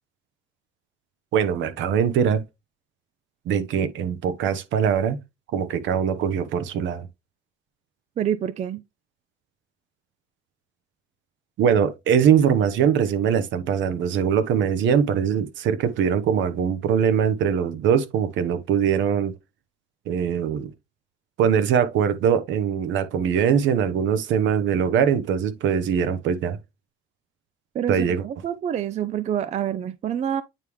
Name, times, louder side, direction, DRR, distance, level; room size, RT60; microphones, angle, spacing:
voice 1, 1.3-2.4 3.5-5.2 5.5-7.1 11.6-19.3 20.1-20.7 21.4-26.6 27.9-28.2, right 8 dB, 65° right, 0.9 m, -22 dB
voice 2, 8.2-8.8 27.7-30.4, right 9 dB, 35° right, 0.4 m, -27 dB
9.0 x 3.5 x 3.1 m
cardioid pair, 120°, 21 cm